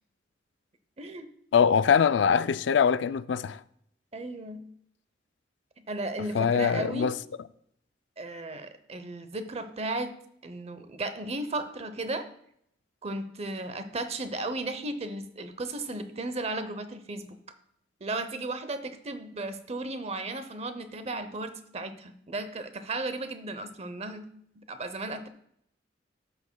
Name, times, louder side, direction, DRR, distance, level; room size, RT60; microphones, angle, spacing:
voice 1, 1.0-1.3 4.1-4.7 5.8-7.1 8.2-10.1 10.4-12.2 13.0-17.4 18.0-24.3 24.6-25.3, right 2 dB, 35° right, 0.7 m, -35 dB
voice 2, 1.5-3.6 6.3-7.2, left 7 dB, 70° left, 0.4 m, -23 dB
12.0 x 8.4 x 2.2 m
head